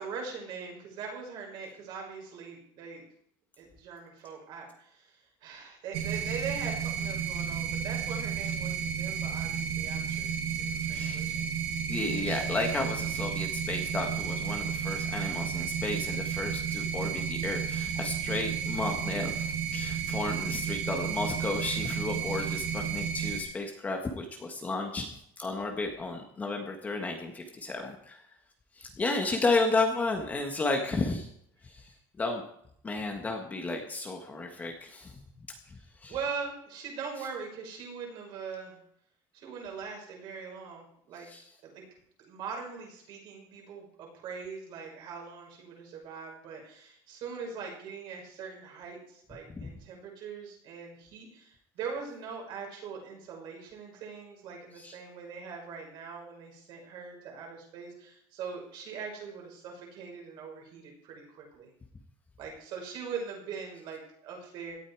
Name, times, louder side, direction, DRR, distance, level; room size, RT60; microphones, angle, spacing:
voice 1, 0.0-3.0 3.6-10.3 10.6-11.4 24.7-25.1 36.1-38.8 39.3-41.3 41.6-41.9 42.2-61.7 62.4-64.8, right 5 dB, 45° right, 1 dB, 5.9 m, -41 dB
sound 1, 5.9-23.4, right 7 dB, 70° right, 4.7 m, -32 dB
voice 2, 10.9-11.2 11.9-25.1 25.4-28.2 28.8-31.3 32.2-32.4 32.8-35.1 36.0-36.1 41.3-41.4 49.6-49.7 54.8-54.9, left 3 dB, 15° left, 3 dB, 1.5 m, -32 dB
17.5 x 13.0 x 4.8 m, 0.70 s
cardioid pair, 180°, 11 cm